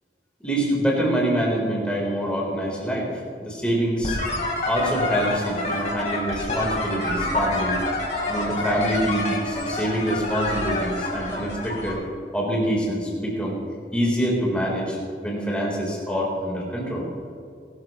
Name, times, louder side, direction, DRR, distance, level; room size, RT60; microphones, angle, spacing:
voice 1, 0.4-3.1 3.4-4.2 4.6-7.8 8.3-12.0 12.3-13.6 13.9-15.0 15.2-17.0, equal, 5° left, -4 dB, 4.1 m, -25 dB
sound 1, 4.0-11.9, left 2 dB, 40° left, 3.6 m, -27 dB
23.0 x 13.5 x 3.2 m, 2.5 s
head